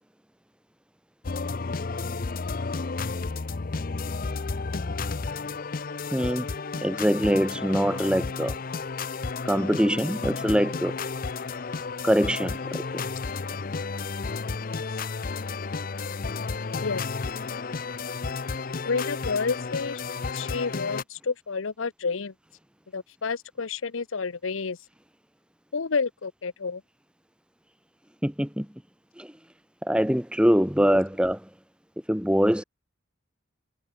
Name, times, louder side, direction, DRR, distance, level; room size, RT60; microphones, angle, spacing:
sound 1, 1.2-21.0, left 4 dB, 45° left, 0.6 m, -32 dB
voice 1, 6.1-6.5 6.8-8.5 9.4-11.0 12.0-12.8 28.2-28.7 29.2-29.3 29.8-31.4 32.1-32.6, equal, 5° right, 1.5 m, -23 dB
voice 2, 18.8-20.0 20.3-22.3 22.9-24.8 25.7-26.8, left 4 dB, 80° left, 0.8 m, -30 dB
head